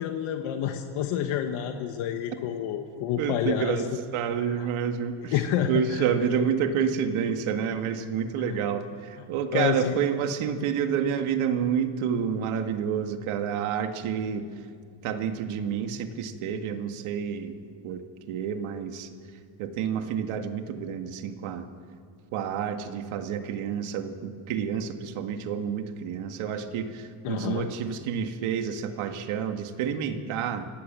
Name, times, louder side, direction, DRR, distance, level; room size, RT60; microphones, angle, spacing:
voice 1, 0.0-3.8 4.5-4.7 5.3-6.0 8.5-8.6 9.5-10.0 27.2-27.7, left 10 dB, 85° left, 5 dB, 1.4 m, -29 dB
voice 2, 3.2-5.4 5.7-14.7 15.0-17.6 17.8-19.1 19.6-21.7 22.3-30.7, right 7 dB, 80° right, 6 dB, 1.9 m, -29 dB
26.0 x 17.5 x 7.5 m, 2.2 s
cardioid pair, 160°, 48 cm